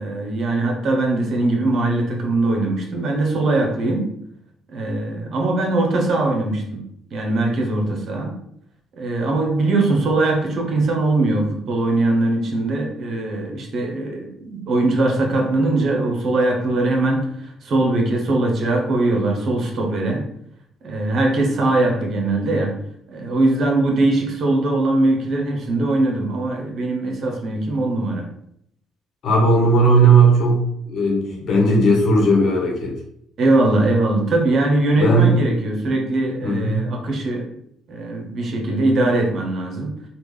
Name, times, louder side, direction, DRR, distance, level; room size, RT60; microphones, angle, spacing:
voice 1, 0.0-4.1 4.7-6.8 7.1-8.4 9.0-17.3 17.6-20.3 20.8-22.7 23.1-28.3 33.4-37.5 37.9-40.0, right 2 dB, 60° right, 1 dB, 0.9 m, -21 dB
voice 2, 29.2-33.0 35.0-35.3 36.4-36.9, right 2 dB, 60° left, 0 dB, 1.1 m, -16 dB
3.4 x 2.4 x 3.2 m, 0.73 s
hypercardioid pair, 55°, 0 cm